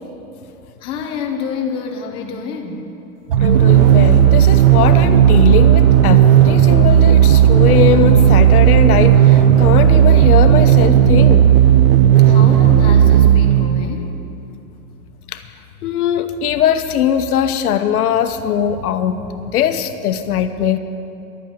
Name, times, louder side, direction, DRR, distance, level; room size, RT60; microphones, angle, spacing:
voice 1, 0.8-2.9 12.3-14.2, left 5 dB, 15° left, 3 dB, 0.5 m, -27 dB
sound 1, 3.3-14.0, right 10 dB, 40° right, 0.4 m, -11 dB
sound 2, 3.3-10.4, right 1 dB, 80° right, 2.3 m, -31 dB
voice 2, 3.4-11.4 15.3-15.4 15.8-19.2 19.5-20.8, left 9 dB, 80° left, 9 dB, 1.0 m, -19 dB
11.5 x 8.7 x 8.8 m, 2.8 s
supercardioid pair, 160°, 44 cm